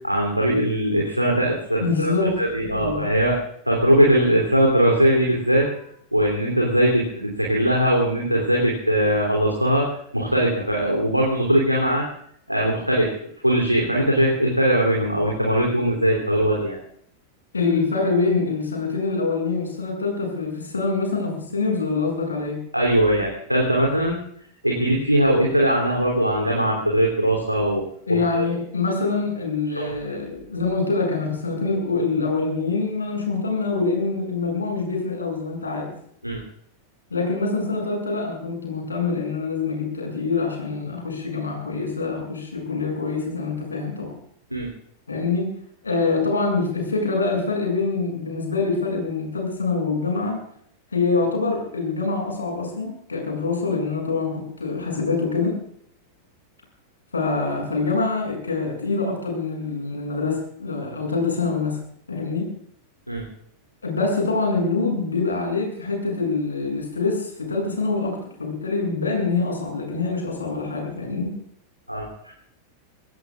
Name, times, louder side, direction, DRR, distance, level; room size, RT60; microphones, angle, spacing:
voice 1, 0.0-2.1 2.4-5.8 6.1-12.0 12.5-13.2 13.4-16.8 22.7-24.2 24.6-27.8 28.1-28.5 29.7-29.9 36.2-36.4 44.5-44.7 63.1-63.2 71.9-72.3, right 1 dB, 90° right, -2 dB, 3.1 m, -20 dB
voice 2, 1.8-2.4 2.6-3.1 17.5-22.6 28.1-35.9 37.1-44.1 45.1-45.5 45.8-50.4 50.9-55.6 57.1-61.8 62.1-62.5 63.8-71.3, left 4 dB, 75° left, 1 dB, 7.4 m, -25 dB
25.0 x 19.0 x 2.5 m, 0.67 s
figure-of-eight pair, 90°, 0 cm